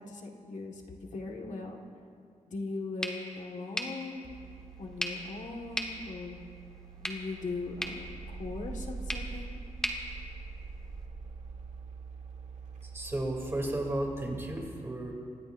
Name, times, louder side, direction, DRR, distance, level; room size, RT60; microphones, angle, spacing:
voice 1, 0.0-1.8 2.5-4.4 4.8-6.4 7.0-9.6, left 3 dB, 75° left, 0 dB, 1.7 m, -39 dB
sound 1, 3.0-11.1, equal, 5° left, 1.4 m, -40 dB
sound 2, 4.2-14.5, right 4 dB, 70° right, 1.7 m, -44 dB
voice 2, 12.9-15.1, right 1 dB, 20° right, -1 dB, 2.9 m, -33 dB
26.5 x 20.0 x 2.6 m, 2.4 s
wide cardioid pair, 145°, 13 cm